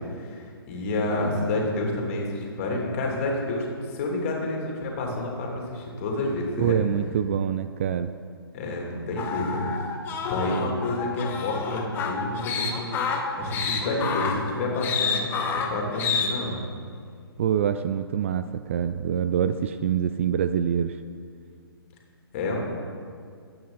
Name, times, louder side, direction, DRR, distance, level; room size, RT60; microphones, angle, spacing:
voice 1, 0.2-6.8 8.5-9.7 10.3-13.0 13.4-16.6 22.3-22.6, left 2 dB, 30° left, -1 dB, 2.8 m, -29 dB
voice 2, 6.6-8.1 17.4-21.0, right 9 dB, 30° right, 11 dB, 0.4 m, -25 dB
sound 1, 9.2-16.3, left 5 dB, 15° left, 1.0 m, -29 dB
22.5 x 8.8 x 4.0 m, 2.2 s
figure-of-eight pair, 130°, 13 cm